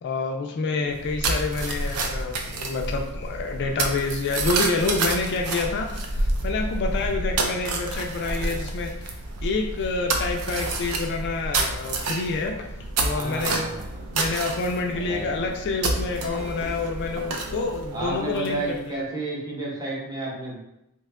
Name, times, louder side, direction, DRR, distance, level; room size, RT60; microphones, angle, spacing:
voice 1, 0.0-9.1 9.4-12.7 13.0-13.8 14.1-18.6 18.9-19.0, left 3 dB, 50° left, 3 dB, 0.3 m, -28 dB
sound 1, 0.9-18.8, right 2 dB, 70° right, 0.4 m, -29 dB
voice 2, 13.1-14.1 14.9-15.5 17.9-20.6, right 2 dB, 15° right, -5 dB, 0.8 m, -32 dB
2.8 x 2.2 x 3.5 m, 0.86 s
head